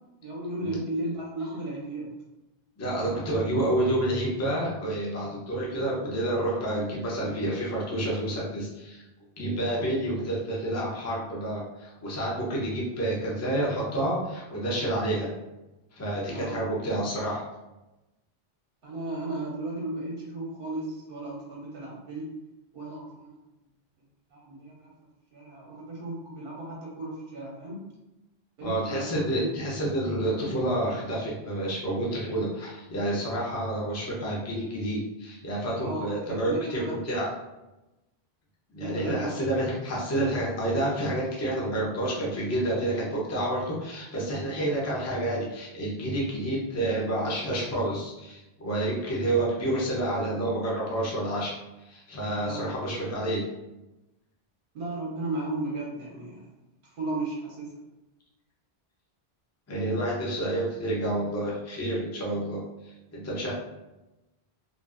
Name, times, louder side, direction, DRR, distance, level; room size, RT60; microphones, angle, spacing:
voice 1, 0.2-2.1 16.3-16.6 18.8-22.3 22.7-23.4 24.3-24.9 25.3-27.8 28.6-29.7 35.8-36.9 38.8-39.4 52.4-52.7 54.7-56.4 56.8-57.7, right 2 dB, 65° right, -4 dB, 0.8 m, -35 dB
voice 2, 2.8-9.0 9.4-15.3 15.9-17.4 28.6-37.3 38.7-51.5 51.8-53.5 59.7-63.5, right 1 dB, 20° left, -5 dB, 0.5 m, -29 dB
2.5 x 2.4 x 2.4 m, 1.0 s
omnidirectional pair, 1.1 m